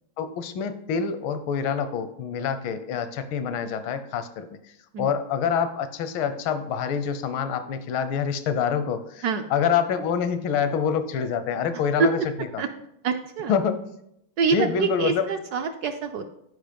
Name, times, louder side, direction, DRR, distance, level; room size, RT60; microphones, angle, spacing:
voice 1, 0.2-4.5 5.0-9.2 9.5-12.2 12.5-12.6 13.5-13.7 14.5-15.3, left 7 dB, 85° left, 10 dB, 1.5 m, -26 dB
voice 2, 13.0-13.6 14.4-16.3, right 5 dB, 70° right, 6 dB, 1.0 m, -25 dB
10.5 x 5.1 x 5.1 m, 0.77 s
omnidirectional pair, 2.2 m